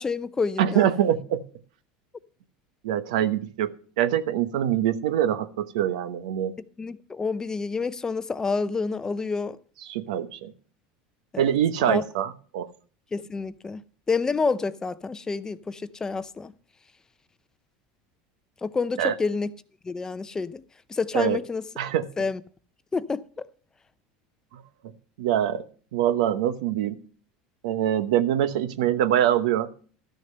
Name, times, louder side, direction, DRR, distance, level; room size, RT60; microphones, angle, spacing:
voice 1, 0.0-0.9 6.8-9.6 11.3-11.5 11.8-12.0 13.1-13.8 14.1-16.5 18.6-19.5 19.8-20.6 20.9-21.6 22.2-22.4 22.9-23.5, left 4 dB, 15° left, 0.5 m, -28 dB
voice 2, 0.6-1.4 2.8-6.5 9.9-10.5 11.4-12.7 19.0-19.1 21.1-21.4 21.8-22.1 24.5-24.6 25.2-25.7 25.9-27.0 27.6-29.7, right 10 dB, 85° right, 0.9 m, -24 dB
12.5 x 6.6 x 6.5 m
supercardioid pair, 125°, 4 cm